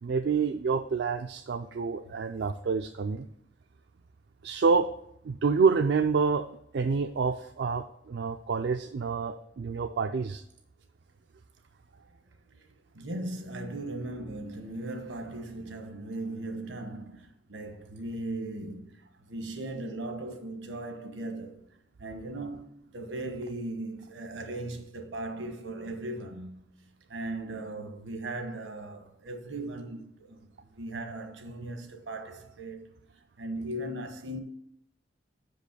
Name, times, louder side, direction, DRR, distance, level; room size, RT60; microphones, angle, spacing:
voice 1, 0.0-3.3 4.4-4.9 5.2-6.5 6.7-10.4, right 5 dB, 65° right, 0.4 m, -27 dB
voice 2, 12.9-21.6 22.0-26.6 27.1-34.4, right 2 dB, 80° right, 1.2 m, -38 dB
6.2 x 5.3 x 6.7 m
head